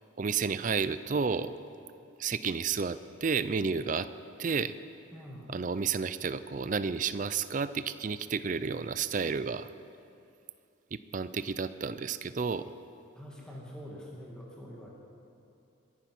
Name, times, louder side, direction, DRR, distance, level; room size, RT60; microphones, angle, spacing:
voice 1, 0.2-1.5 2.2-4.1 4.4-4.7 5.5-9.7 10.9-12.7, right 5 dB, 40° right, 14 dB, 0.4 m, -31 dB
voice 2, 5.1-5.5 13.2-14.9, equal, 5° left, -4 dB, 2.0 m, -45 dB
22.5 x 10.0 x 6.0 m, 2.6 s
head